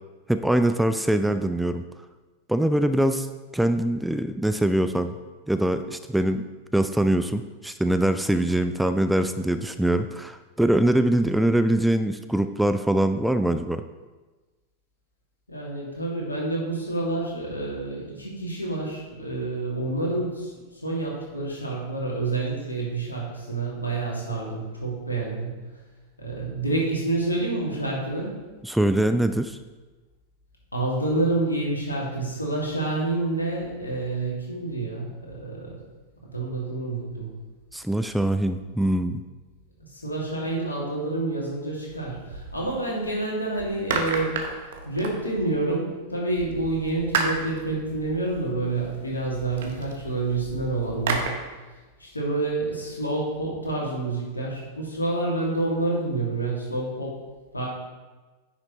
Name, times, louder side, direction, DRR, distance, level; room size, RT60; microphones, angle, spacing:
voice 1, 0.3-1.8 2.5-3.3 3.5-5.1 5.5-6.4 6.7-13.8 28.6-29.6 37.7-39.2, right 1 dB, 5° right, 9 dB, 0.3 m, -23 dB
voice 2, 15.5-25.6 26.2-28.4 30.7-35.8 36.2-37.3 39.9-44.4 44.8-51.3 52.0-57.2 57.5-57.7, right 2 dB, 80° left, -3 dB, 2.2 m, -28 dB
sound 1, 41.9-43.1 43.5-45.7 46.4-51.3, right 4 dB, 60° right, 1.0 m, -33 dB
9.8 x 5.9 x 3.1 m, 1.3 s
figure-of-eight pair, 90°, 0 cm